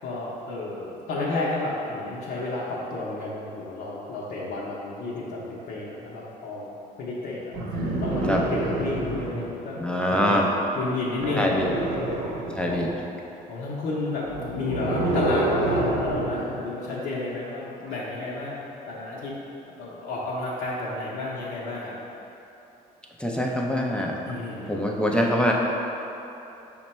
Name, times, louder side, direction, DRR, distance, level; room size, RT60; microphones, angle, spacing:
voice 1, 0.0-6.7 7.0-7.5 8.0-9.8 10.1-10.4 10.7-12.3 12.7-12.8 13.5-19.3 19.7-21.9 24.2-24.7, left 2 dB, 70° left, -6 dB, 0.7 m, -31 dB
sound 1, 7.5-9.5 11.2-12.9 14.2-16.5 17.9-18.0, right 2 dB, 75° right, 0.8 m, -28 dB
voice 2, 9.8-10.5 11.4-11.7 12.6-12.9 23.2-24.2 24.7-25.5, equal, 5° left, -1 dB, 0.4 m, -24 dB
5.8 x 2.2 x 4.1 m, 3.0 s
cardioid pair, 110°, 17 cm